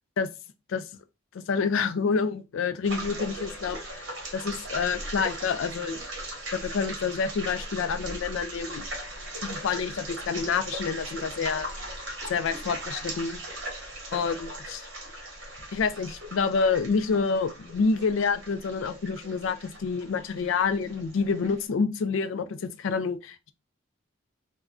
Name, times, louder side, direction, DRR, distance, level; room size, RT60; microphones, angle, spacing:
voice 1, 1.3-6.0 6.5-8.8 9.4-11.7 12.3-13.4 14.1-14.9 15.7-23.5, left 5 dB, 75° left, 0.4 m, -28 dB
sound 1, 2.8-21.6, right 1 dB, 65° right, 1.2 m, -39 dB
3.5 x 2.2 x 2.4 m
head